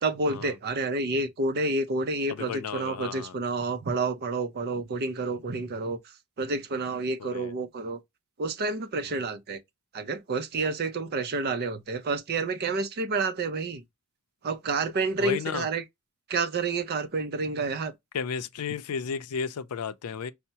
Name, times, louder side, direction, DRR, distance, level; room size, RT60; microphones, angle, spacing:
voice 1, 0.0-8.0 8.4-9.6 9.9-13.8 14.4-15.8 16.3-17.9, right 3 dB, 45° right, 0.5 m, -29 dB
voice 2, 2.3-3.4 7.2-7.5 9.1-9.2 15.2-15.7 18.1-20.3, left 6 dB, 85° left, 0.5 m, -33 dB
5.5 x 2.1 x 2.8 m
head